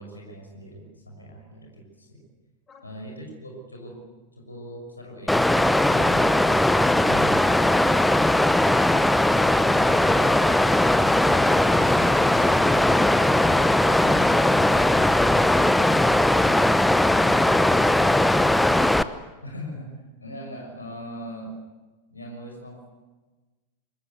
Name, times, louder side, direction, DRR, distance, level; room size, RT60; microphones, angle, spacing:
voice 1, 0.0-2.2 2.8-4.0 4.3-5.5 5.9-7.4 19.4-21.6 22.1-22.9, equal, 80° left, 2 dB, 6.1 m, -40 dB
Water, 5.3-19.0, left 1 dB, 5° left, 0.8 m, -19 dB
voice 2, 9.3-13.0, left 3 dB, 20° left, 2 dB, 7.2 m, -39 dB
25.0 x 20.0 x 8.3 m, 1.2 s
figure-of-eight pair, 90°, 0 cm